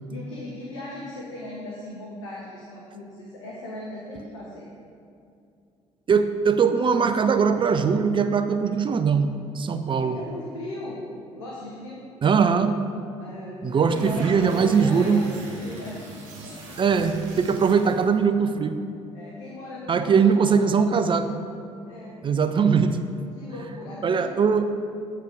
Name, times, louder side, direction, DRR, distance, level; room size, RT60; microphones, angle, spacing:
voice 1, 0.1-4.7 9.9-11.1 11.3-12.1 13.2-16.8 19.1-21.1 21.8-22.2 23.3-24.3, left 1 dB, 80° left, -3 dB, 0.9 m, -38 dB
voice 2, 6.1-10.2 12.2-12.7 13.6-15.2 16.8-18.8 19.9-21.4 22.2-23.0 24.0-24.7, right 6 dB, 30° right, 9 dB, 0.5 m, -21 dB
sound 1, 13.7-18.2, right 2 dB, 80° right, 1.1 m, -41 dB
7.9 x 4.7 x 4.9 m, 2.5 s
figure-of-eight pair, 50°, 16 cm